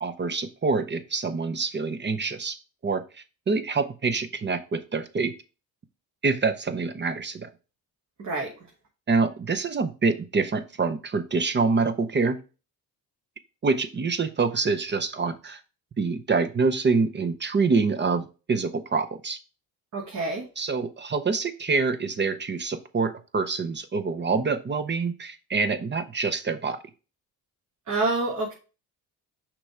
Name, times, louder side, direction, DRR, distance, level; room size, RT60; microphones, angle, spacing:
voice 1, 0.0-2.6 2.8-5.3 6.2-7.5 9.1-12.4 13.6-15.6 16.0-19.4 20.6-26.8, right 4 dB, 30° right, 11 dB, 0.7 m, -26 dB
voice 2, 8.2-8.5 19.9-20.4 27.9-28.5, right 2 dB, 45° right, -1 dB, 1.7 m, -27 dB
5.9 x 3.3 x 4.8 m, 0.32 s
cardioid pair, 95°, 39 cm